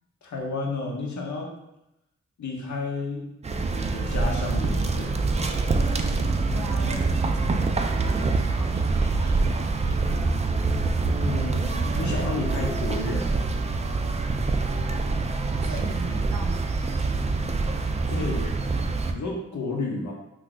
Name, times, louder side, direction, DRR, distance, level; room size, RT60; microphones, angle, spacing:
voice 1, 0.2-1.5 2.4-3.3 3.7-5.6 11.2-13.4 18.1-20.1, left 2 dB, 70° left, 0 dB, 0.8 m, -32 dB
sound 1, 3.4-19.1, right 3 dB, 25° right, 0.3 m, -25 dB
voice 2, 6.2-10.1 15.6-17.0, right 2 dB, 70° right, 2 dB, 0.7 m, -40 dB
2.6 x 2.4 x 3.7 m, 0.87 s
cardioid pair, 45°, 30 cm